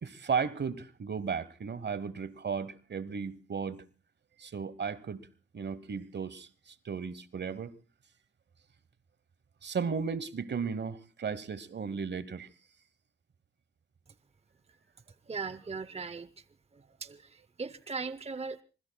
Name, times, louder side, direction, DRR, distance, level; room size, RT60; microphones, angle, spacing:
voice 1, 0.0-3.8 4.4-5.3 5.5-7.7 9.6-12.5, right 6 dB, 60° right, 1.1 m, -35 dB
voice 2, 15.3-16.4 16.7-18.6, right 4 dB, 30° right, 0.7 m, -39 dB
25.5 x 20.5 x 2.3 m
cardioid pair, 55°, 21 cm